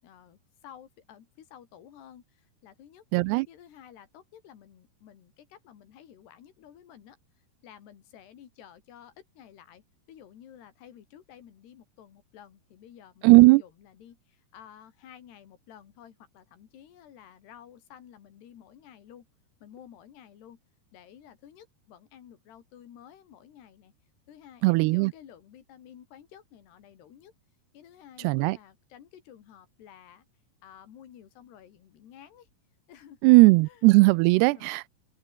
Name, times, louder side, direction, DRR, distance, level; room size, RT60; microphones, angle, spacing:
voice 1, 0.0-3.0 3.5-7.2 7.6-9.8 10.1-19.3 19.6-20.6 20.9-23.9 24.3-27.3 27.7-30.3 30.6-32.5 32.9-33.9 34.2-34.8, left 9 dB, 85° left, 4.6 m, -52 dB
voice 2, 3.1-3.5 13.2-13.6 24.6-25.1 28.2-28.6 33.2-34.9, right 24 dB, 90° right, 2.6 m, -18 dB
open air
omnidirectional pair, 4.6 m